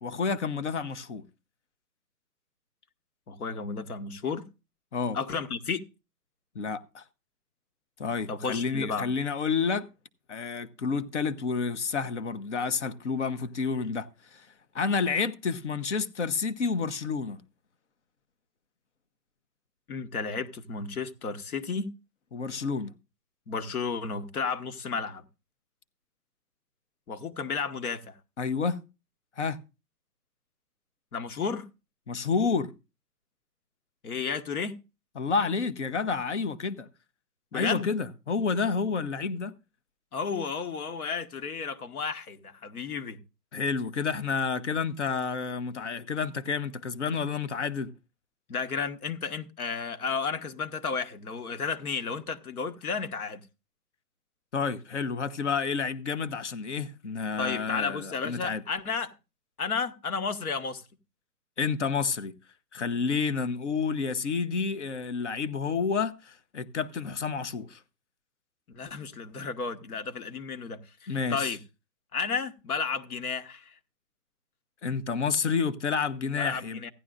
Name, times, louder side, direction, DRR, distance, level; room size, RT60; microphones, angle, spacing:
voice 1, 0.0-1.2 4.9-5.2 6.5-7.0 8.0-9.9 10.3-14.4 14.7-17.4 22.3-22.9 28.4-28.8 29.4-29.6 32.1-32.7 35.2-36.9 37.5-39.5 43.5-47.9 54.5-58.6 61.6-62.3 62.7-67.8 71.1-71.5 74.8-76.8, left 5 dB, 45° left, 0.9 m, -29 dB
voice 2, 3.3-4.4 5.1-5.8 8.3-9.1 19.9-21.9 23.5-25.2 27.1-28.2 31.1-31.7 34.0-34.8 37.5-37.9 40.1-43.2 48.5-53.4 57.4-59.1 59.6-60.8 68.7-71.6 72.1-73.7 76.3-76.9, left 5 dB, 60° left, 1.4 m, -32 dB
15.5 x 11.0 x 2.5 m
hypercardioid pair, 165°, 49 cm